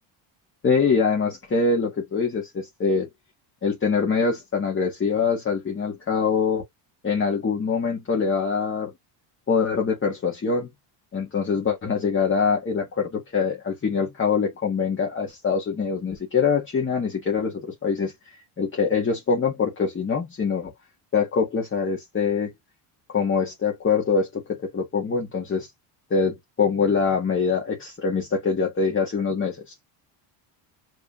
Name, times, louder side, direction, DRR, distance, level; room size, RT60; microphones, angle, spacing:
voice 1, 0.6-3.1 3.6-6.6 7.0-8.9 9.5-10.7 11.1-18.1 18.6-20.7 21.1-22.5 23.1-25.7 26.1-29.7, left 5 dB, 25° left, 1.5 m, -24 dB
5.3 x 3.3 x 2.5 m
cardioid pair, 135°, 49 cm